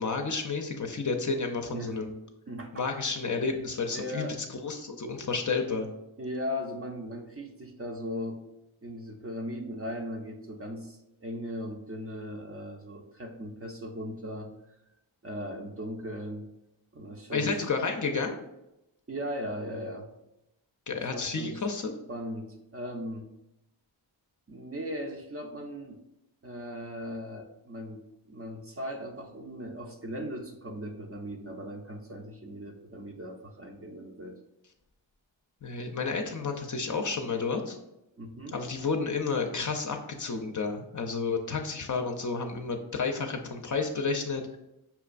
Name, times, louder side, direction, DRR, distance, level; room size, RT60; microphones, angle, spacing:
voice 1, 0.0-2.1 2.7-4.3 4.6-5.9 17.3-18.4 20.9-21.9 35.6-37.8 38.5-44.6, left 4 dB, 40° left, 3 dB, 0.5 m, -31 dB
voice 2, 1.7-2.0 2.5-3.0 3.9-4.4 6.2-8.4 8.8-14.5 15.2-16.5 16.9-17.7 19.1-20.1 20.9-21.7 22.1-23.3 24.5-26.0 26.4-34.4 38.2-38.6, equal, 30° right, 3 dB, 0.5 m, -38 dB
5.6 x 2.2 x 2.4 m, 0.88 s
cardioid pair, 45°, 47 cm